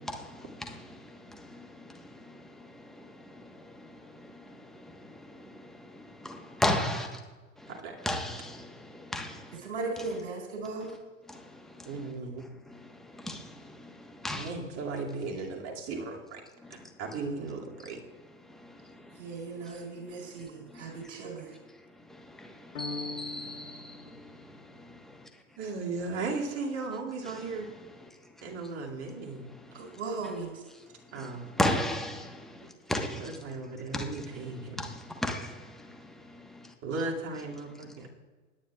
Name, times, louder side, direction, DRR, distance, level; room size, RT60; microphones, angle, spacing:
voice 1, 0.2-7.2 7.6-7.7 8.0-9.6 10.0-10.1 11.3-11.9 12.9-14.5 18.5-19.1 20.7-21.1 22.1-25.2 29.9-30.0 31.2-31.3 31.6-33.3 33.9-34.0 34.8-36.7, left 1 dB, ahead, 1.3 m, -36 dB
voice 2, 7.7-8.0 11.8-12.4 14.3-16.4 16.7-18.0 25.6-27.7 28.4-29.5 31.1-31.5 33.1-34.9 36.8-38.1, right 3 dB, 45° right, 2.5 m, -36 dB
voice 3, 9.6-11.0 19.2-21.5 29.7-30.6, right 3 dB, 70° right, 4.2 m, -37 dB
sound 1, 22.7-25.1, left 4 dB, 80° left, 1.3 m, -42 dB
20.0 x 9.9 x 2.4 m
hypercardioid pair, 95°, 38 cm